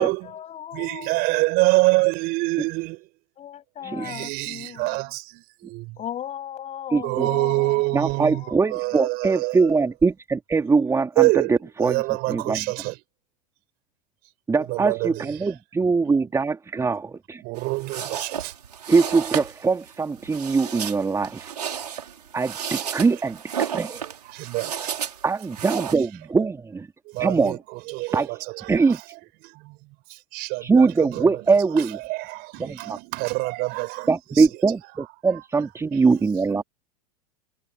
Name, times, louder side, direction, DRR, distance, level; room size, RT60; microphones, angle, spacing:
voice 1, 0.0-1.4 3.4-5.1 6.0-8.7, left 10 dB, 35° left, 7.5 m, -37 dB
voice 2, 0.7-3.0 4.0-6.0 7.0-9.7 11.2-11.5 11.8-13.0 14.7-15.3 16.1-16.2 16.8-16.9 17.4-18.5 24.3-25.0 27.1-29.0 29.4-29.8 30.1-31.3 31.8-34.5 35.9-36.6, right 23 dB, 50° right, 6.2 m, -26 dB
voice 3, 3.8-4.2 6.9-7.3 7.9-12.0 12.3-12.6 14.5-17.4 18.9-21.5 22.3-24.0 25.2-26.9 27.2-27.6 28.1-28.4 28.7-29.0 30.6-32.0 32.6-33.0 34.1-36.6, right 4 dB, 15° right, 2.7 m, -22 dB
sound 1, 17.6-26.0, right 8 dB, 90° right, 5.0 m, -32 dB
hypercardioid pair, 100°, 20 cm